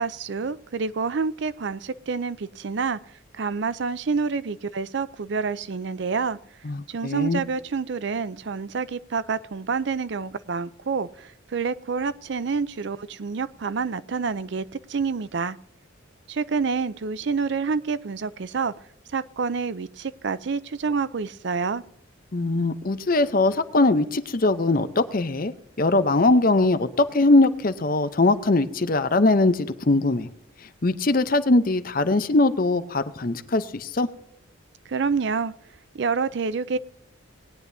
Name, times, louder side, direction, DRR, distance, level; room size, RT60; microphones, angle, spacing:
voice 1, 0.0-3.0 3.3-6.4 6.9-15.6 16.3-18.7 19.1-21.8 34.9-35.5 35.9-36.8, right 5 dB, 60° right, 16 dB, 0.5 m, -28 dB
voice 2, 6.7-7.4 22.3-30.3 30.8-34.1, left 2 dB, 45° left, 12 dB, 0.7 m, -21 dB
19.5 x 10.0 x 2.7 m, 0.72 s
head